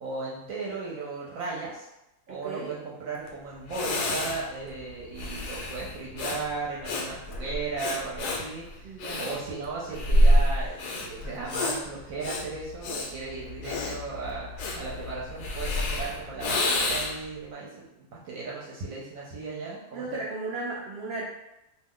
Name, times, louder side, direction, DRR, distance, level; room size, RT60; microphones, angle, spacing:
voice 1, 0.0-1.9 2.3-14.5 14.8-20.0, right 4 dB, 65° right, -5 dB, 0.9 m, -36 dB
voice 2, 2.3-2.8 8.8-9.3 19.9-21.2, right 3 dB, 90° right, -3 dB, 0.5 m, -35 dB
Breathing, 3.3-3.4 3.7-17.3, left 1 dB, 85° left, 1.1 m, -28 dB
2.6 x 2.3 x 3.5 m, 0.89 s
omnidirectional pair, 1.7 m